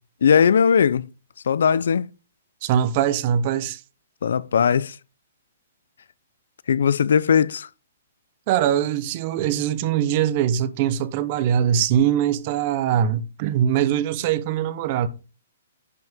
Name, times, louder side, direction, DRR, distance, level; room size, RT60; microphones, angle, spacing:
voice 1, 0.2-1.1 1.5-2.1 4.2-5.0 6.7-7.7, left 7 dB, 75° left, 0.4 m, -18 dB
voice 2, 2.6-3.8 8.5-15.1, right 9 dB, 35° right, 0.8 m, -22 dB
10.5 x 6.0 x 3.6 m
hypercardioid pair, 165°, 0 cm